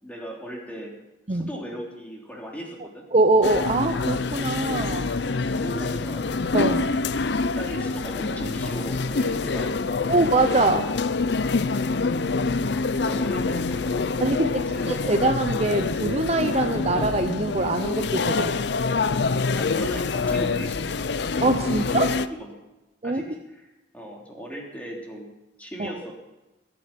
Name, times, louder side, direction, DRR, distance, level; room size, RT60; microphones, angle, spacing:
voice 1, 0.0-0.9 1.3-3.1 5.1-6.3 7.4-10.2 12.7-15.0 19.6-21.0 21.8-22.0 22.3-22.5 23.0-25.3 25.6-26.1, equal, 10° left, -2 dB, 3.2 m, -37 dB
voice 2, 3.1-5.1 6.5-6.9 10.1-10.9 14.2-14.5 14.9-18.6 21.4-22.1 23.0-23.2 25.8-25.9, right 2 dB, 35° right, 7 dB, 0.7 m, -23 dB
sound 1, 3.4-22.3, left 4 dB, 60° left, 0.6 m, -26 dB
21.5 x 9.3 x 5.9 m, 1.0 s
head